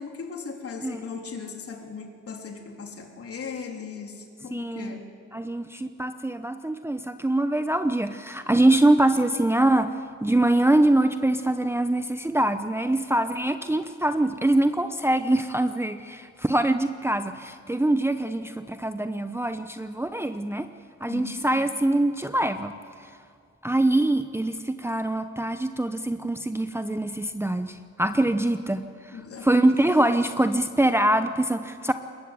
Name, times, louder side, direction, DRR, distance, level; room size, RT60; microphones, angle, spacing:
voice 1, 0.0-5.1 21.0-21.4 29.1-29.5, left 5 dB, 50° left, 3 dB, 3.6 m, -38 dB
voice 2, 4.5-5.0 5.3-20.7 21.0-22.7 23.0-23.1 23.6-31.9, right 1 dB, 10° right, 9 dB, 0.8 m, -24 dB
21.5 x 20.0 x 8.2 m, 2.2 s
cardioid pair, 90°, 30 cm